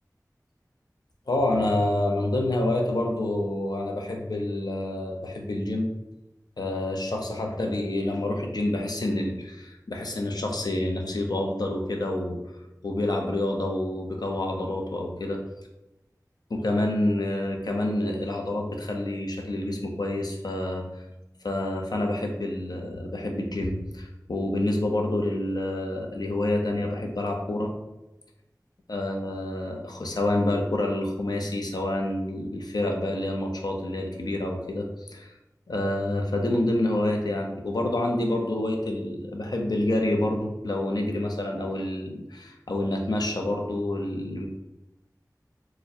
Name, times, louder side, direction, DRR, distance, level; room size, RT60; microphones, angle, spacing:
voice 1, 1.3-5.9 6.6-12.4 12.8-15.4 16.5-20.9 21.4-27.7 28.9-35.3 35.7-44.5, left 1 dB, 80° left, 1 dB, 0.5 m, -28 dB
4.3 x 2.2 x 2.7 m, 0.97 s
wide cardioid pair, 45°, 7 cm